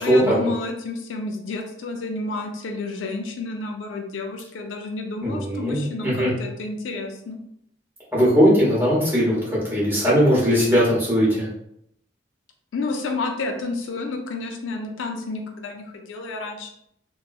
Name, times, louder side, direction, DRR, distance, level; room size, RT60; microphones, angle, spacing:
voice 1, 0.0-7.4 12.7-16.7, left 3 dB, 80° left, 3 dB, 0.4 m, -30 dB
voice 2, 5.2-6.3 8.1-11.5, equal, 10° right, -6 dB, 0.9 m, -19 dB
2.8 x 2.3 x 2.3 m, 0.75 s
head